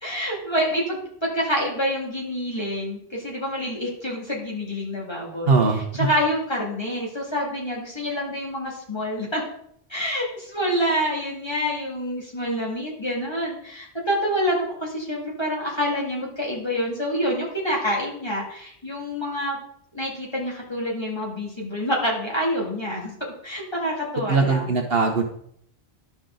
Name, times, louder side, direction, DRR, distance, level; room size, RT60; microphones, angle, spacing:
voice 1, 0.0-9.4 9.9-19.6 19.9-23.1 23.4-24.8, equal, 20° left, -3 dB, 2.3 m, -27 dB
voice 2, 5.5-5.8 24.3-25.2, right 4 dB, 55° right, 3 dB, 1.1 m, -20 dB
11.5 x 5.9 x 3.8 m, 0.67 s
omnidirectional pair, 1.2 m